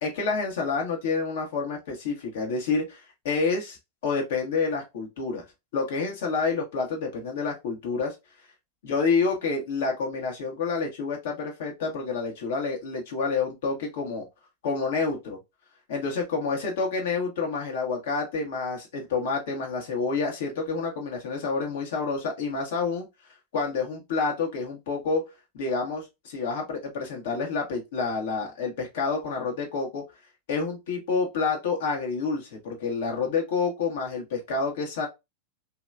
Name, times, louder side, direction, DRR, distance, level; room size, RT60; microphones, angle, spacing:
voice 1, 0.0-3.8 4.0-5.4 5.7-8.1 8.8-14.3 14.6-15.4 15.9-23.1 23.5-30.0 30.5-35.1, left 4 dB, 55° left, 1.3 m, -28 dB
3.1 x 2.8 x 2.4 m
figure-of-eight pair, 90°, 0 cm